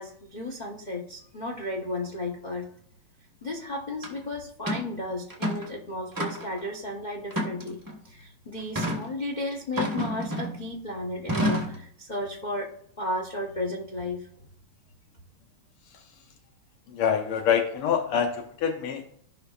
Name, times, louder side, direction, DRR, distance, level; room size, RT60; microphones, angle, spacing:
voice 1, 0.0-2.7 3.4-7.8 8.0-14.5, left 1 dB, 60° left, 0 dB, 0.4 m, -34 dB
sound 1, 4.0-4.1 4.7-4.9 5.3-5.7 6.2-6.6 7.3-8.0 8.7-9.0 9.8-10.6 11.3-11.8, equal, 20° right, 0.5 m, -29 dB
voice 2, 16.9-19.0, left 7 dB, 80° left, 4 dB, 1.7 m, -25 dB
15.0 x 5.4 x 2.4 m, 0.65 s
omnidirectional pair, 2.4 m